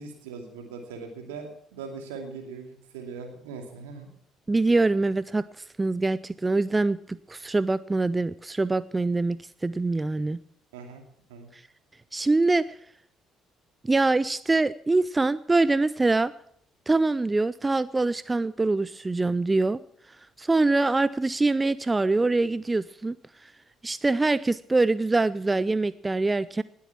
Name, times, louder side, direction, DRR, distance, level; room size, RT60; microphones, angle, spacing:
voice 1, 0.0-4.1 10.7-11.0 11.3-11.5, right 5 dB, 75° right, 4 dB, 2.5 m, -40 dB
voice 2, 4.5-5.4 5.8-10.4 12.1-12.6 13.8-16.3 16.9-19.8 20.4-23.2 23.8-26.6, right 3 dB, 20° right, 18 dB, 0.4 m, -24 dB
19.5 x 8.4 x 5.9 m, 0.67 s
figure-of-eight pair, 50°, 0 cm